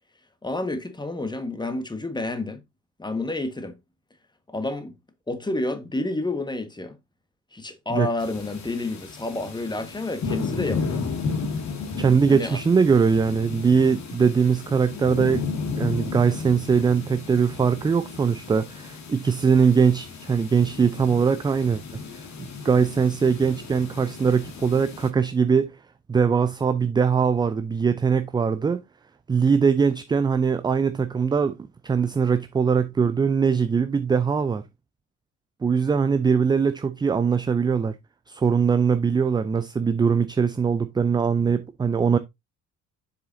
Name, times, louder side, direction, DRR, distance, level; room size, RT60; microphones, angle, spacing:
voice 1, 0.4-2.6 3.0-3.8 4.5-4.9 5.3-7.0 7.5-11.0 12.3-12.6, left 2 dB, 10° left, 1.4 m, -29 dB
sound 1, 8.2-25.1, left 4 dB, 40° left, 2.0 m, -34 dB
voice 2, 12.0-15.5 15.8-25.7 26.1-28.8 29.3-34.6 35.6-37.9 38.3-42.2, right 6 dB, 10° right, 0.4 m, -21 dB
7.5 x 6.9 x 2.6 m
figure-of-eight pair, 55°, 44 cm